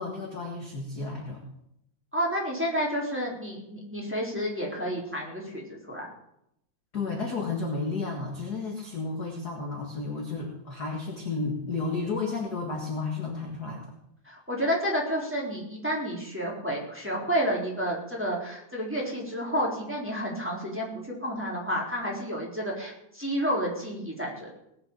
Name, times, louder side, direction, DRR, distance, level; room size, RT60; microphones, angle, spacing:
voice 1, 0.0-1.4 6.9-13.9, left 3 dB, 40° left, 1 dB, 1.9 m, -32 dB
voice 2, 2.1-6.1 14.2-24.5, equal, 5° right, -3 dB, 3.5 m, -30 dB
19.0 x 7.0 x 7.4 m, 0.78 s
omnidirectional pair, 3.5 m